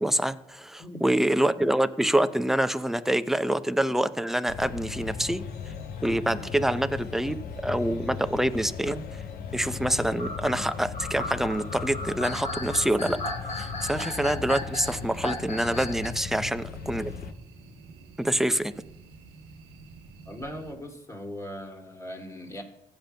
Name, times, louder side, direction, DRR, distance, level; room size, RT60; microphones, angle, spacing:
voice 1, 0.0-5.4 6.0-9.0 9.5-13.2 13.6-17.1 18.2-18.7, right 1 dB, ahead, 11 dB, 0.6 m, -26 dB
sound 1, 4.5-17.3, left 6 dB, 65° left, 0.8 m, -37 dB
sound 2, 5.4-7.6 8.2-9.3 10.0-16.2, left 2 dB, 40° left, 1.8 m, -37 dB
sound 3, 13.8-20.7, right 4 dB, 85° right, 1.1 m, -49 dB
voice 2, 20.3-22.6, equal, 20° left, 2 dB, 2.5 m, -39 dB
15.5 x 8.9 x 2.2 m, 0.82 s
supercardioid pair, 70°, 17 cm